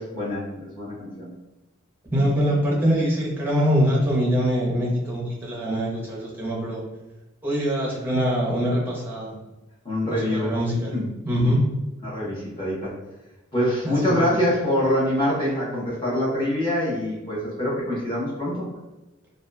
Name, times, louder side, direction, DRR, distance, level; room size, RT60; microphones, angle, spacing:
voice 1, 0.0-1.4 9.8-10.5 10.9-11.0 12.0-12.9 13.5-18.6, left 1 dB, 25° left, -8 dB, 1.0 m, -25 dB
voice 2, 2.1-6.8 7.4-9.4 10.1-11.6 13.8-14.4, equal, 10° right, -5 dB, 0.6 m, -24 dB
2.8 x 2.3 x 2.2 m, 1.1 s
head